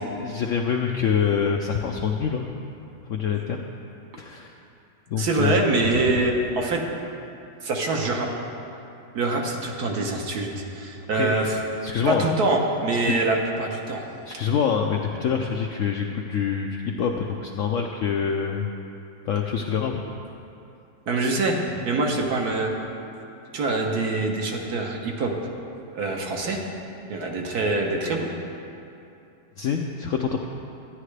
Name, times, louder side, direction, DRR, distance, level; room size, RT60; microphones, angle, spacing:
voice 1, 0.0-2.4 3.1-3.6 4.2-4.5 5.1-6.1 11.1-11.3 11.8-12.3 13.0-13.2 14.3-18.7 19.2-20.0 29.6-30.4, left 7 dB, 75° left, 2 dB, 0.7 m, -26 dB
voice 2, 5.2-6.8 7.6-8.3 9.1-10.5 10.7-11.6 12.1-14.0 21.1-21.6 21.8-22.7 23.5-25.3 25.9-26.6 27.1-28.3, right 2 dB, 70° right, 1 dB, 1.4 m, -24 dB
13.0 x 9.9 x 3.3 m, 2.7 s
omnidirectional pair, 1.8 m